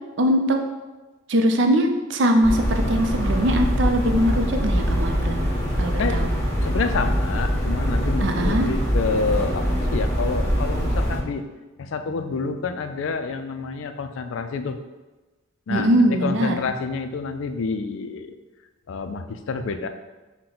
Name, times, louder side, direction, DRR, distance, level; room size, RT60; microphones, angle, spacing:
voice 1, 0.2-0.6 1.3-5.5 5.8-6.3 8.2-8.7 15.7-16.5, equal, 60° right, 5 dB, 0.5 m, -21 dB
sound 1, 2.4-11.2, equal, 10° left, 0.8 m, -23 dB
voice 2, 6.6-11.4 11.8-14.8 15.7-18.3 18.9-19.9, left 4 dB, 75° left, 8 dB, 0.4 m, -28 dB
5.9 x 2.2 x 3.8 m, 1.2 s
head